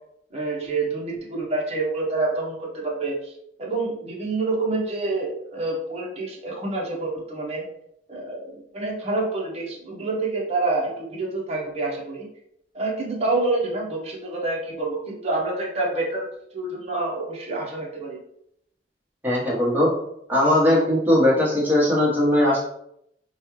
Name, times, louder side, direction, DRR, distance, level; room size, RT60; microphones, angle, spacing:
voice 1, 0.3-3.3 3.6-7.6 8.1-12.3 12.7-16.3 16.5-18.2, right 2 dB, 35° right, -3 dB, 0.9 m, -27 dB
voice 2, 19.2-19.9 20.3-22.6, left 1 dB, 10° right, -6 dB, 1.3 m, -19 dB
5.1 x 2.3 x 3.1 m, 0.75 s
head